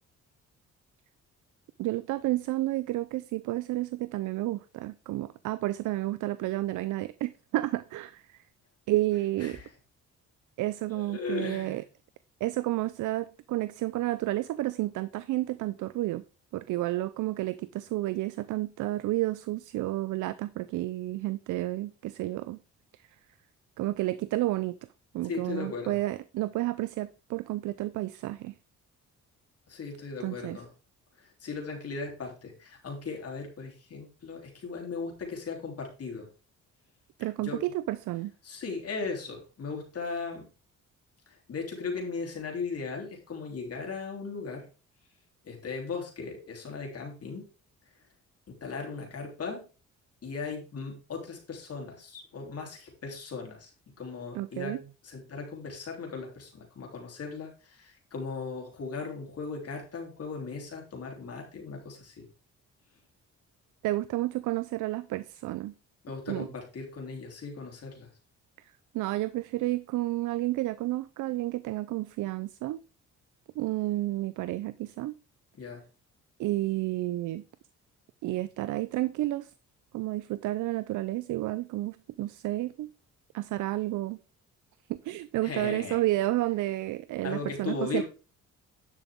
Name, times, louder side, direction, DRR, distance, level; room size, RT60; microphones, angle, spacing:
voice 1, 1.8-8.4 8.9-9.6 10.6-11.8 12.4-16.2 16.5-22.6 23.8-24.8 25.1-28.5 30.2-30.6 37.2-38.3 54.3-54.8 63.8-65.7 66.3-66.5 68.9-72.8 73.6-75.2 76.4-77.4 78.2-79.5 79.9-82.9 83.3-84.2 84.9-88.0, right 16 dB, 80° right, 0.5 m, -31 dB
voice 2, 9.4-9.7 10.9-11.8 25.2-26.0 29.7-30.7 31.2-36.3 37.4-37.6 38.4-40.5 41.3-44.7 45.4-47.4 48.5-49.6 50.2-53.7 54.0-54.8 55.0-62.3 66.0-68.1 75.5-75.8 85.4-86.0 87.2-88.0, left 4 dB, 50° left, 3.3 m, -37 dB
10.5 x 6.0 x 3.6 m
cardioid pair, 90°, 30 cm